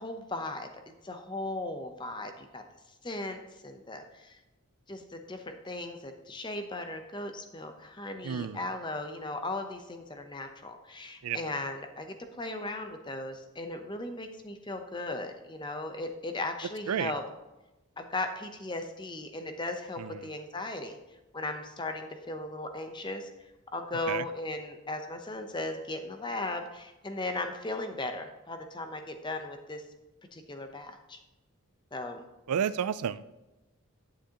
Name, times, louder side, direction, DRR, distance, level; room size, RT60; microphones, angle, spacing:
voice 1, 0.0-2.6 3.0-4.4 4.9-17.2 18.0-21.0 21.3-23.3 23.7-29.8 30.3-31.2 31.9-32.3, left 2 dB, 20° left, 6 dB, 0.7 m, -37 dB
voice 2, 8.2-8.6 11.2-11.4 16.9-17.1 20.0-20.2 24.1-24.2 32.5-33.2, right 8 dB, 90° right, 16 dB, 0.4 m, -31 dB
9.9 x 8.7 x 2.9 m, 1.0 s
head